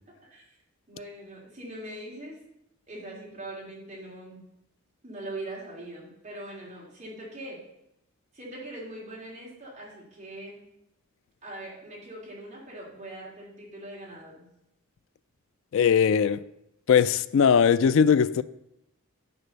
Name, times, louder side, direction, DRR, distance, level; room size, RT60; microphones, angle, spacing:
voice 1, 0.9-2.4 2.9-4.4 5.0-7.6 8.3-10.6 11.4-14.4, right 1 dB, 30° right, 2.9 m, -41 dB
voice 2, 15.7-16.4 16.9-18.4, left 7 dB, 60° left, 0.3 m, -20 dB
9.8 x 4.2 x 6.7 m
head